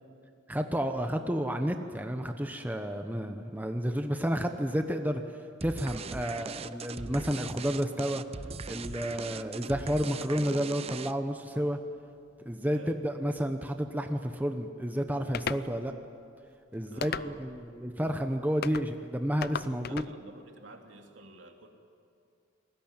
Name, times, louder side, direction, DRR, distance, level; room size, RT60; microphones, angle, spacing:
voice 1, 0.5-5.2 5.6-8.2 8.7-11.8 12.4-15.9 16.7-20.1, equal, 10° right, 5 dB, 1.0 m, -31 dB
sound 1, 5.6-11.4, right 4 dB, 30° right, 0.6 m, -40 dB
sound 2, 15.3-15.7 17.0-17.6 18.6-18.9 19.4-20.1, left 6 dB, 50° left, 0.5 m, -35 dB
voice 2, 16.9-17.6 19.8-21.7, right 2 dB, 70° right, 3 dB, 3.0 m, -50 dB
28.0 x 20.5 x 9.0 m, 2.4 s
head